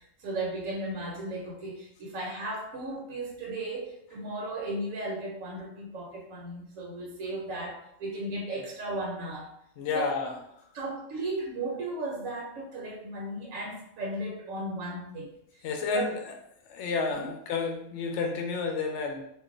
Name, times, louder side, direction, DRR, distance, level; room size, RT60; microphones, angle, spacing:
voice 1, 0.2-9.5 9.9-10.1 10.7-15.3 15.9-16.1 17.2-17.3, right 2 dB, 70° right, -1 dB, 1.0 m, -35 dB
voice 2, 9.8-10.3 15.6-16.1 16.7-19.2, left 4 dB, 65° left, 3 dB, 0.8 m, -30 dB
2.4 x 2.1 x 3.7 m, 0.74 s
omnidirectional pair, 1.5 m